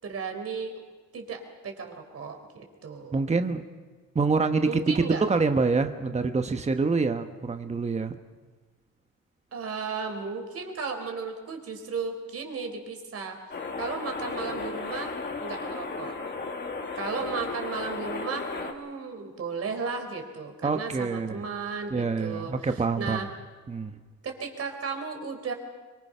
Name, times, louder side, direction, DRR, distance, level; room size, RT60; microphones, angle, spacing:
voice 1, 0.0-0.7 1.1-3.2 4.7-5.2 9.5-13.4 13.8-15.1 15.4-16.1 17.0-23.3 24.2-25.5, right 5 dB, 50° right, 4 dB, 4.2 m, -35 dB
voice 2, 3.1-3.6 4.1-8.1 20.6-21.4 21.9-23.2 23.7-23.9, right 4 dB, 20° right, 7 dB, 1.2 m, -26 dB
sound 1, 13.5-18.7, left 4 dB, 35° left, 2.5 m, -34 dB
24.0 x 23.5 x 5.7 m, 1.4 s
cardioid pair, 90°, 30 cm